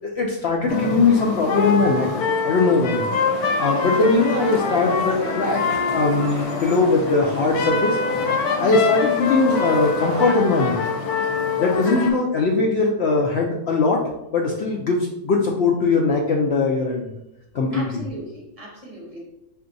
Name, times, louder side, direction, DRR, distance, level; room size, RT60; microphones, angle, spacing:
voice 1, 0.0-2.1 2.4-3.0 3.6-8.0 8.6-10.8 11.6-14.0 14.3-17.1 17.5-18.0, left 3 dB, 70° left, -1 dB, 0.6 m, -20 dB
sound 1, 0.7-12.1, left 4 dB, 85° left, 1.2 m, -25 dB
sound 2, 3.1-10.4, right 3 dB, 55° right, 0.9 m, -36 dB
voice 2, 8.5-8.9 11.9-12.5 17.7-19.2, right 1 dB, 30° right, -4 dB, 0.8 m, -37 dB
5.7 x 2.6 x 2.6 m, 0.88 s
omnidirectional pair, 1.6 m